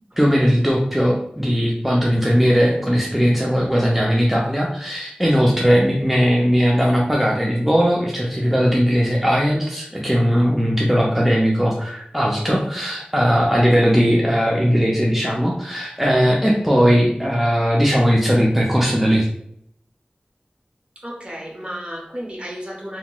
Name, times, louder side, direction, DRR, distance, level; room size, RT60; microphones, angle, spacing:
voice 1, 0.2-19.3, equal, 5° right, -2 dB, 0.5 m, -18 dB
voice 2, 21.0-23.0, equal, 35° right, -2 dB, 0.8 m, -33 dB
2.8 x 2.8 x 2.2 m, 0.69 s
wide cardioid pair, 45°, 3 cm